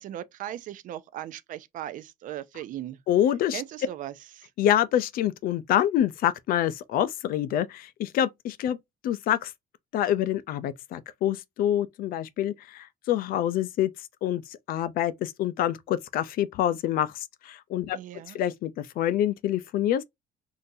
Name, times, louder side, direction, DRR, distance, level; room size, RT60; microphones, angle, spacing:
voice 1, 0.0-3.0 3.5-4.5 17.9-18.4, right 12 dB, 50° right, 0.4 m, -38 dB
voice 2, 3.1-3.6 4.6-8.8 9.0-9.5 9.9-13.9 14.2-14.4 14.7-18.0 18.3-20.0, left 11 dB, 60° left, 0.5 m, -26 dB
3.8 x 2.6 x 2.6 m
cardioid pair, 165°, 17 cm